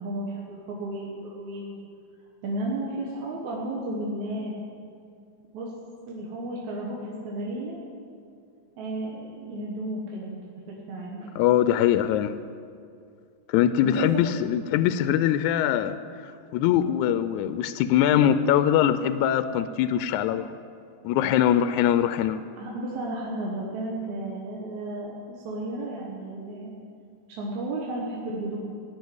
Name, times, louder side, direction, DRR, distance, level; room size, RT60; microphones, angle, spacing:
voice 1, 0.0-1.8 2.4-4.5 5.5-5.7 6.1-7.8 8.8-10.4 10.7-11.3 13.8-14.2 21.9-22.0 22.5-26.7 27.3-28.6, right 1 dB, 70° right, -3 dB, 2.7 m, -33 dB
voice 2, 11.4-12.3 13.5-16.0 16.5-20.5 21.0-22.4, left 10 dB, 80° left, 12 dB, 1.9 m, -22 dB
16.0 x 7.0 x 9.5 m, 2.4 s
omnidirectional pair, 3.6 m